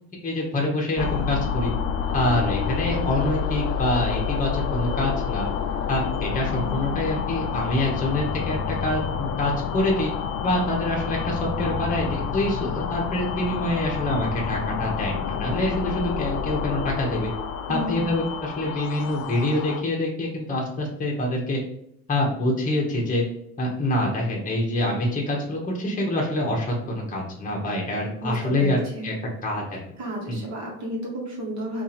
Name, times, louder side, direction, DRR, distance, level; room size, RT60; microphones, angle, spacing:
voice 1, 0.2-1.7 2.1-5.5 5.9-10.1 10.4-17.3 17.7-21.6 22.1-23.2 23.6-29.1 29.4-29.8 30.3-30.4, left 1 dB, 20° left, -2 dB, 1.0 m, -26 dB
sound 1, 1.0-19.8, left 6 dB, 45° left, 0.4 m, -28 dB
voice 2, 17.7-18.1 28.2-29.0 30.0-31.8, equal, 45° right, -2 dB, 1.3 m, -32 dB
2.6 x 2.6 x 4.1 m, 0.74 s
supercardioid pair, 80°, 38 cm